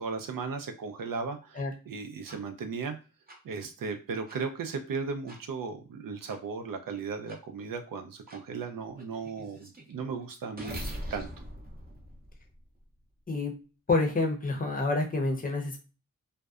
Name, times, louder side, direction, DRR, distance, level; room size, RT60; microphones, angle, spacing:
voice 1, 0.0-1.6 1.9-3.0 3.4-11.3, right 5 dB, 80° right, 7 dB, 0.5 m, -36 dB
sound 1, 2.3-2.4 3.3-3.4 4.3-4.4 5.3-5.4 6.3-6.4 7.3-7.4 8.3-8.4 9.0-12.8, equal, 30° right, 0.5 m, -42 dB
voice 2, 13.9-15.8, left 3 dB, 25° left, 2 dB, 0.6 m, -28 dB
2.6 x 2.1 x 2.3 m, 0.34 s
wide cardioid pair, 110°, 33 cm